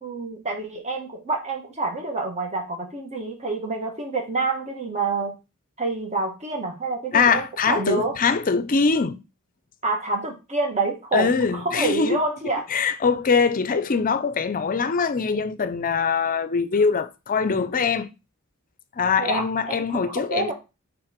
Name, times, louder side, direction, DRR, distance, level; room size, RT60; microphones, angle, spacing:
voice 1, 0.0-5.3 5.8-8.2 9.8-12.6 19.2-20.5, right 3 dB, 30° right, 1.5 m, -27 dB
voice 2, 7.1-9.2 11.1-12.2 12.7-18.1 19.0-20.5, left 5 dB, 40° left, 0.5 m, -22 dB
5.9 x 3.6 x 5.1 m
head